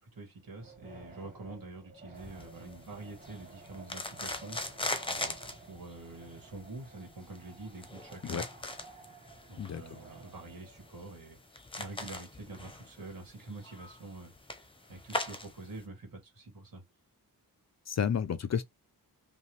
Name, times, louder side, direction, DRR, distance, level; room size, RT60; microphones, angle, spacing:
voice 1, 0.0-4.6 5.1-5.4 5.7-8.4 9.4-11.4 11.8-16.8, right 2 dB, 65° right, 2.2 m, -46 dB
Wind, 0.5-10.9, right 2 dB, 20° right, 1.5 m, -54 dB
sound 1, 2.2-15.8, left 2 dB, 15° left, 0.7 m, -41 dB
voice 2, 9.6-10.0 17.9-18.6, left 7 dB, 50° left, 0.5 m, -31 dB
5.4 x 2.3 x 3.2 m
wide cardioid pair, 140°, 36 cm